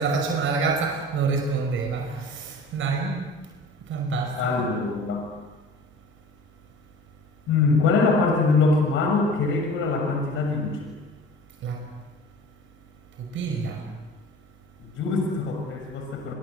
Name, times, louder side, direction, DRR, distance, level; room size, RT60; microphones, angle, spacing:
voice 1, 0.0-3.3 3.9-4.7 11.6-11.8 13.2-13.8, right 4 dB, 80° right, 5.6 m, -27 dB
voice 2, 4.4-5.3 7.5-10.9 14.8-16.3, left 4 dB, 85° left, 6.9 m, -23 dB
29.0 x 25.0 x 8.2 m
cardioid pair, 90°, 20 cm